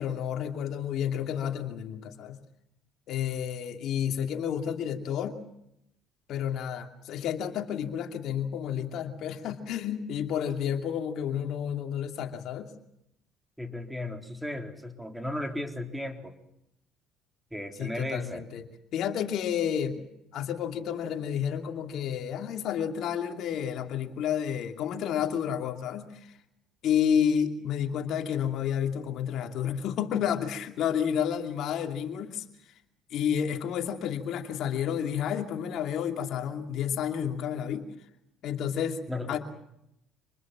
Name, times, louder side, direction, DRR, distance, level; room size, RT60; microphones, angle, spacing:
voice 1, 0.0-2.4 3.1-5.4 6.3-12.7 17.8-18.6 18.9-20.0 20.3-26.2 26.8-32.4 33.1-37.9 38.4-39.0 39.3-39.4, left 8 dB, 65° left, 4 dB, 2.7 m, -30 dB
voice 2, 13.6-16.3 17.5-18.4 39.1-39.4, left 1 dB, 5° right, 4 dB, 3.8 m, -35 dB
26.5 x 20.5 x 7.5 m, 0.79 s
supercardioid pair, 70°, 0 cm